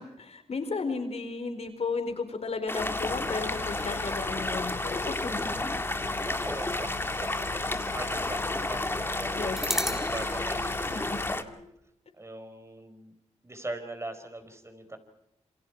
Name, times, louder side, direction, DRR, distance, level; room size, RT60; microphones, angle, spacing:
voice 1, 0.0-5.8 7.7-7.8 9.3-10.0 10.9-11.4, left 4 dB, 60° left, 7 dB, 4.5 m, -34 dB
sound 1, 2.7-11.4, left 2 dB, 20° left, 1.9 m, -32 dB
sound 2, 2.8-11.4, left 5 dB, 75° left, 2.8 m, -41 dB
voice 2, 6.2-7.5 7.8-11.5 12.2-13.1 13.4-15.0, right 2 dB, 20° right, 8 dB, 4.7 m, -41 dB
sound 3, 9.6-11.7, equal, 5° right, 3.3 m, -36 dB
28.0 x 26.5 x 4.7 m, 0.82 s
cardioid pair, 70°, 12 cm